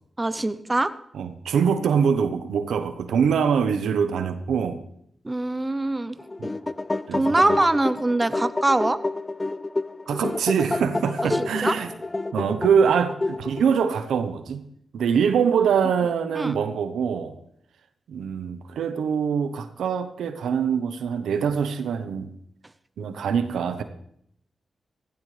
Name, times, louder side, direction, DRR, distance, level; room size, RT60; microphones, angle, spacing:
voice 1, 0.2-0.9 5.2-6.2 7.1-9.0 11.2-11.8 16.4-16.5, right 2 dB, 25° right, 13 dB, 0.8 m, -23 dB
voice 2, 1.1-4.8 6.4-6.5 7.1-7.5 10.1-11.9 12.3-14.6 14.9-17.4 18.1-22.3 23.0-23.8, right 7 dB, 90° right, 10 dB, 0.9 m, -24 dB
sound 1, 6.2-13.8, left 2 dB, 30° left, 0.5 m, -29 dB
16.5 x 16.5 x 3.3 m, 0.70 s
cardioid pair, 50°, 0 cm